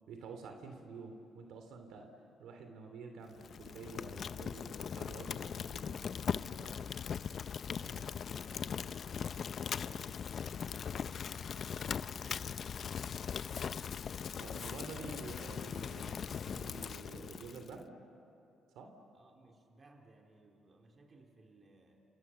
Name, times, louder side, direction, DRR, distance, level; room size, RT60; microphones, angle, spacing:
voice 1, 0.1-2.1 2.4-6.0 6.6-6.9 7.8-8.0 14.4-17.9 18.7-18.9, right 4 dB, 80° right, 5 dB, 2.8 m, -49 dB
Fire, 3.3-17.7, left 7 dB, 55° left, 0.6 m, -40 dB
voice 2, 7.5-14.0 19.1-22.1, right 2 dB, 35° right, 2 dB, 3.7 m, -62 dB
29.0 x 27.5 x 6.9 m, 2.6 s
cardioid pair, 90°, 0 cm